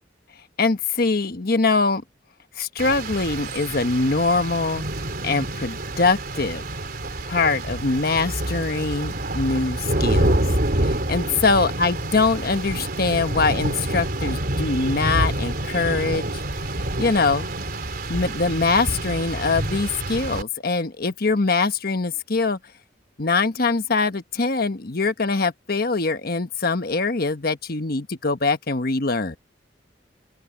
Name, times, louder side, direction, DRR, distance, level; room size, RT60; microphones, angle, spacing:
voice 1, 0.6-2.0 2.6-4.8 5.2-6.6 7.3-10.4 10.8-16.3 17.0-17.5 18.1-22.6 23.2-29.4, left 3 dB, 55° left, 1.2 m, -23 dB
Rain, 2.8-20.4, right 1 dB, 55° right, 3.6 m, -27 dB
open air
head